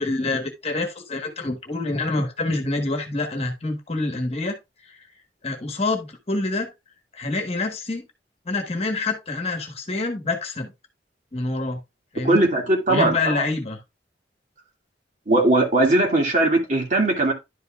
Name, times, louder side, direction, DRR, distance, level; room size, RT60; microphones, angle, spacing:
voice 1, 0.0-4.6 4.8-5.1 5.4-6.7 7.1-8.0 8.4-10.7 11.3-11.8 12.1-12.4 12.9-13.8, left 2 dB, 35° left, 1.3 m, -26 dB
voice 2, 12.2-13.4 15.3-17.3, right 2 dB, 45° right, 2.3 m, -19 dB
11.0 x 5.4 x 2.4 m
head